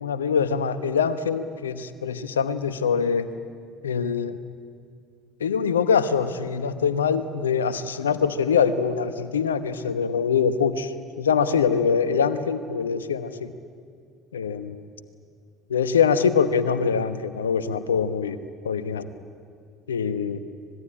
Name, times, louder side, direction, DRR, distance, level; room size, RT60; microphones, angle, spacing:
voice 1, 0.0-3.3 3.8-4.4 5.4-13.5 14.3-14.8 15.7-18.4 18.6-19.1 19.9-20.4, left 6 dB, 80° left, 12 dB, 1.0 m, -24 dB
25.0 x 20.5 x 8.8 m, 2.2 s
figure-of-eight pair, 60°, 0 cm